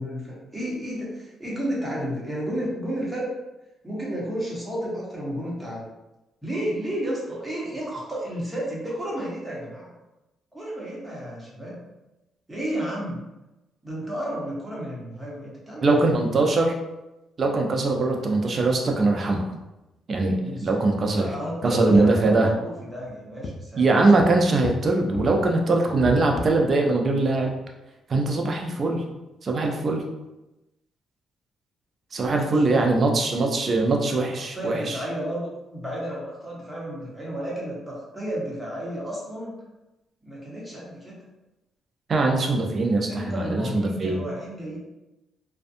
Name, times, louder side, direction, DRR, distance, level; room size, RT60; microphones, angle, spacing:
voice 1, 0.0-3.3 3.8-5.9 6.4-9.9 10.5-11.8 12.5-13.2 13.8-16.1 20.4-20.8 21.1-23.9 28.6-28.7 32.4-33.2 34.0-34.2 34.5-39.5 40.2-41.2 43.0-44.8, equal, 15° right, -6 dB, 1.0 m, -32 dB
voice 2, 15.8-16.7 17.4-19.4 20.1-21.3 21.6-22.5 23.8-27.5 28.1-29.0 29.4-30.0 32.1-35.0 42.1-44.2, right 2 dB, 45° right, 2 dB, 0.5 m, -22 dB
sound 1, 19.6-19.8 20.1-20.4 20.7-20.8 21.6-22.4 22.9-23.1 23.4-23.6 24.2-25.4 25.9-26.7 27.1-27.2 27.4-27.6 28.2-28.3, left 3 dB, 60° left, 0.3 m, -34 dB
2.5 x 2.2 x 2.6 m, 0.99 s
cardioid pair, 90°, 0 cm